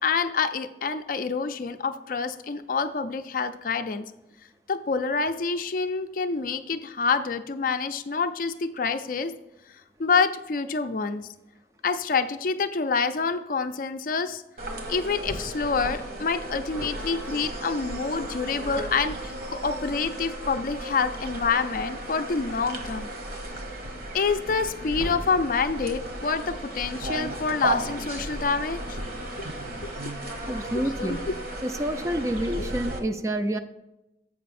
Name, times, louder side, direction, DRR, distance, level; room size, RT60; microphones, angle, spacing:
voice 1, 0.0-4.0 4.7-9.3 10.0-11.3 11.8-14.4 14.9-23.1 24.1-29.0 29.4-29.5 29.8-29.9 30.7-31.2 32.6-32.7, left 5 dB, 50° left, 9 dB, 0.4 m, -27 dB
sound 1, 14.6-33.0, right 1 dB, 55° right, 1.3 m, -34 dB
voice 2, 30.5-31.2 31.6-33.6, right 1 dB, 15° right, 8 dB, 0.4 m, -28 dB
7.8 x 5.5 x 4.2 m, 0.91 s
head